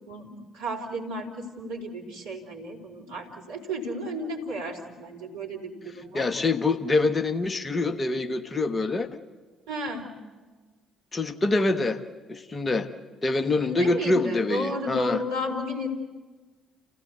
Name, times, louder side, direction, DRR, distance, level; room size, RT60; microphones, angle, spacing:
voice 1, 0.1-6.3 9.7-10.1 13.4-15.9, equal, 70° right, -2 dB, 3.0 m, -33 dB
voice 2, 6.1-9.1 11.1-12.0 12.3-12.9 13.2-15.2, left 3 dB, 30° left, 9 dB, 1.3 m, -25 dB
29.5 x 15.0 x 8.1 m, 1.4 s
figure-of-eight pair, 45°, 0 cm